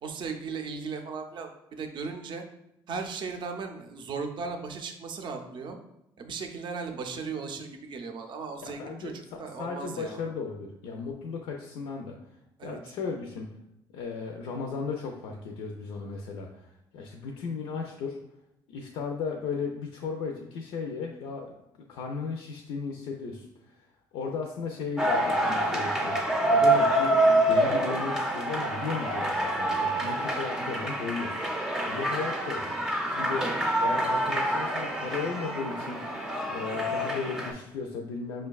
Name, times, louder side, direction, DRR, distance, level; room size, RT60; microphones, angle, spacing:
voice 1, 0.0-2.4 2.9-5.8 6.2-10.2 12.6-12.8, right 4 dB, 55° right, 5 dB, 0.5 m, -37 dB
voice 2, 8.6-12.2 12.6-13.5 13.9-16.7 16.9-18.2 18.7-21.5 21.9-23.8 24.1-26.2 26.5-31.4 31.9-32.7 33.1-33.5 33.8-36.1 36.5-38.5, left 5 dB, 80° left, 2 dB, 0.4 m, -35 dB
sound 1, 25.0-37.5, right 1 dB, 5° right, 0.6 m, -27 dB
5.0 x 2.2 x 2.3 m, 0.85 s
cardioid pair, 85°, 10 cm